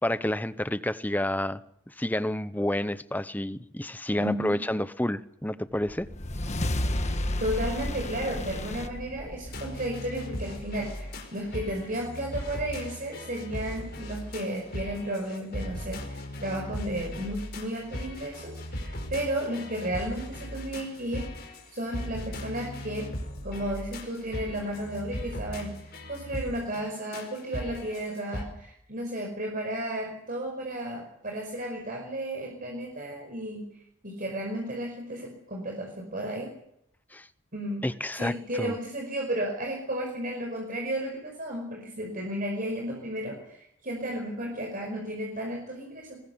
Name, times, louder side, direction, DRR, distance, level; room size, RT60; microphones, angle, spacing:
voice 1, 0.0-1.6 1.9-6.1 37.1-37.3 37.8-38.7, left 1 dB, 10° left, 0.8 m, -29 dB
voice 2, 4.2-4.6 7.4-23.1 23.4-33.7 34.0-36.5 37.5-37.9 38.1-46.2, right 1 dB, 40° right, 5.4 m, -33 dB
sound 1, 5.9-10.4, left 1 dB, 35° left, 1.5 m, -32 dB
sound 2, 9.4-28.4, left 1 dB, 50° left, 5.0 m, -38 dB
22.5 x 21.0 x 7.0 m
head